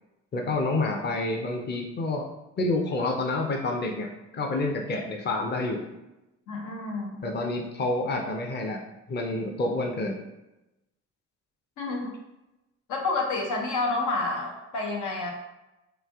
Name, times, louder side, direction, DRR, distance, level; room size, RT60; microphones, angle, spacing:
voice 1, 0.3-2.3 2.6-5.8 7.2-8.8 9.1-10.2, left 2 dB, 35° left, 1 dB, 0.6 m, -28 dB
voice 2, 6.5-7.3 11.8-12.1 12.9-15.3, left 3 dB, 85° left, 0 dB, 0.8 m, -29 dB
3.2 x 2.5 x 3.5 m, 0.95 s
cardioid pair, 90°, 30 cm